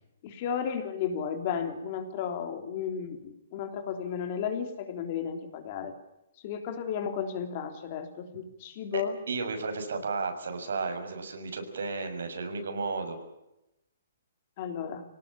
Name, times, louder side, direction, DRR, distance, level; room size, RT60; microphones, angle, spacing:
voice 1, 0.2-5.9 6.4-9.2 14.6-15.0, left 7 dB, 35° left, 6 dB, 3.6 m, -33 dB
voice 2, 9.3-13.2, right 4 dB, 80° right, 6 dB, 6.6 m, -33 dB
25.5 x 18.5 x 8.8 m, 0.88 s
hypercardioid pair, 165°, 0 cm